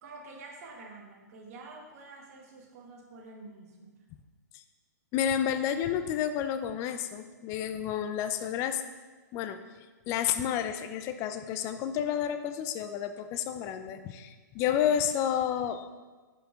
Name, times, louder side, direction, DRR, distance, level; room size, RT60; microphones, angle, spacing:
voice 1, 0.0-4.0, right 3 dB, 55° right, 1 dB, 1.2 m, -48 dB
voice 2, 5.1-8.8 9.3-9.6 10.1-15.9, left 9 dB, 30° left, 9 dB, 0.4 m, -30 dB
5.7 x 5.1 x 3.6 m, 1.3 s
hypercardioid pair, 130°, 10 cm